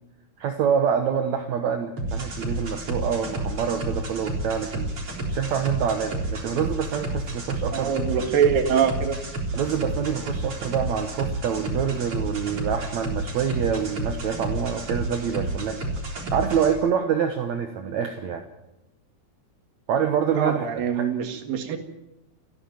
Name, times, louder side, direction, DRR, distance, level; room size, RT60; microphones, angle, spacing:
voice 1, 0.4-4.9 5.3-8.0 9.5-18.4 19.9-21.1, right 7 dB, 65° right, 5 dB, 2.4 m, -26 dB
sound 1, 2.0-16.7, right 1 dB, 35° right, 4.5 m, -31 dB
voice 2, 7.7-9.2 20.4-21.8, right 7 dB, 80° right, 7 dB, 3.6 m, -23 dB
29.0 x 11.5 x 9.1 m, 0.92 s
omnidirectional pair, 4.0 m